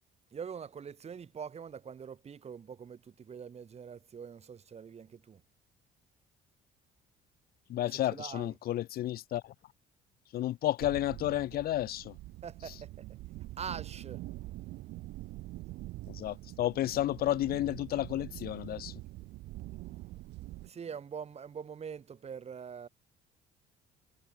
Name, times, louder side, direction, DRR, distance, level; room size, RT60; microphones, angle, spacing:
voice 1, 0.3-5.4 7.8-8.5 12.4-13.2 13.6-14.3 19.9-20.0 20.6-22.9, right 7 dB, 40° right, 5.2 m, -44 dB
voice 2, 7.7-9.5 10.3-12.1 16.1-18.9, left 13 dB, 65° left, 1.0 m, -32 dB
sound 1, 10.8-20.7, right 18 dB, 85° right, 3.4 m, -45 dB
cardioid pair, 110°, 17 cm